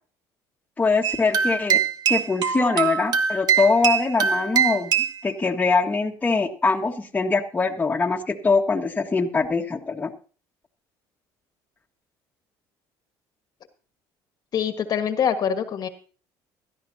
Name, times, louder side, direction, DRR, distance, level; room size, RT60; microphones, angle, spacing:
voice 1, 0.8-1.8 2.1-4.9 5.2-10.1, left 4 dB, 20° left, 3 dB, 1.6 m, -23 dB
sound 1, 1.0-5.2, right 7 dB, 50° right, 1.5 m, -23 dB
voice 2, 14.5-15.9, left 8 dB, 50° left, 8 dB, 1.5 m, -24 dB
17.0 x 13.0 x 2.8 m, 0.38 s
cardioid pair, 100°, 9 cm